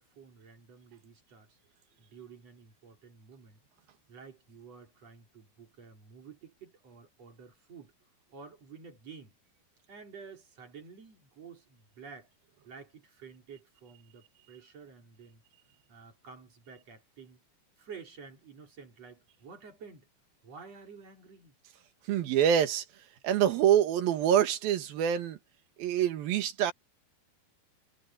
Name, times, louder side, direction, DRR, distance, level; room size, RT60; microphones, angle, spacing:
voice 1, 0.0-1.6 2.0-3.6 4.1-7.9 8.3-9.3 9.9-12.3 12.6-15.4 15.9-17.4 17.8-20.1 20.4-21.6, right 5 dB, 45° right, 4.6 m, -51 dB
voice 2, 22.1-22.8 23.2-25.4 25.8-26.7, right 10 dB, 75° right, 3.4 m, -25 dB
omnidirectional pair, 4.3 m